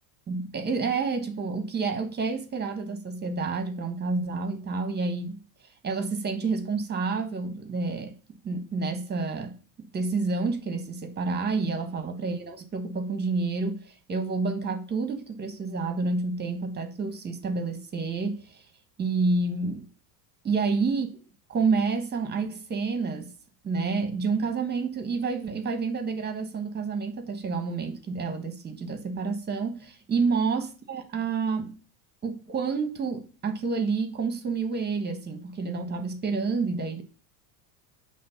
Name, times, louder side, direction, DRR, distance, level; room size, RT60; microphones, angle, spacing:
voice 1, 0.3-5.4 5.8-18.6 19.0-19.9 20.4-21.1 21.5-23.3 23.6-31.8 32.2-37.0, right 4 dB, 20° right, 1.3 m, -29 dB
7.4 x 3.3 x 5.8 m
supercardioid pair, 110°, 49 cm